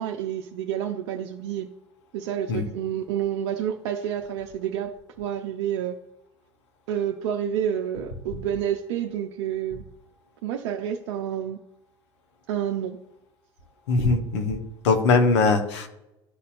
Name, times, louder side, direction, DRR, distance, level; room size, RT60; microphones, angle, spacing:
voice 1, 0.0-1.7 2.1-6.0 6.9-9.8 10.4-11.6 12.5-13.0, right 9 dB, 65° right, 4 dB, 0.5 m, -29 dB
voice 2, 13.9-15.9, left 4 dB, 70° left, 4 dB, 1.1 m, -21 dB
11.5 x 4.1 x 2.5 m, 0.86 s
figure-of-eight pair, 70°, 15 cm